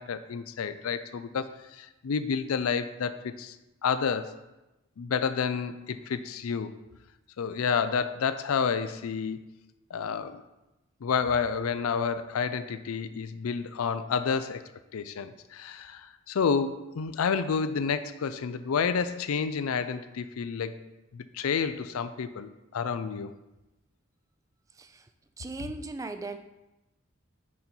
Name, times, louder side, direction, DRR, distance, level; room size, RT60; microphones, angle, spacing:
voice 1, 0.0-3.6 3.8-4.3 5.0-6.7 7.4-9.4 9.9-10.4 11.0-20.8 21.1-23.3, left 6 dB, 85° left, 12 dB, 0.4 m, -30 dB
voice 2, 24.8-25.1 25.4-26.4, right 3 dB, 15° right, 8 dB, 0.3 m, -38 dB
6.4 x 5.4 x 4.4 m, 0.99 s
head